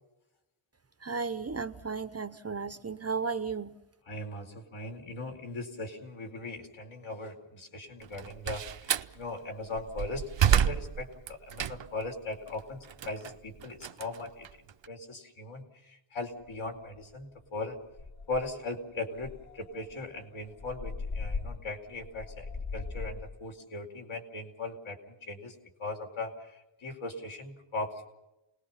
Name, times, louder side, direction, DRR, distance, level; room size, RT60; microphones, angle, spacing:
voice 1, 1.0-3.8, right 5 dB, 30° right, 12 dB, 0.8 m, -34 dB
voice 2, 4.1-14.5 14.9-17.8 18.3-28.1, left 2 dB, 70° left, 3 dB, 4.6 m, -39 dB
Slam, 8.0-9.1 9.7-12.1 12.5-14.9, right 8 dB, 60° right, 0.9 m, -29 dB
sound 1, 16.5-16.6 17.0-17.2 17.6-17.7 17.9-18.6 19.2-23.4, left 4 dB, 35° left, 1.4 m, -39 dB
29.5 x 20.5 x 5.7 m, 0.95 s
wide cardioid pair, 140°, 49 cm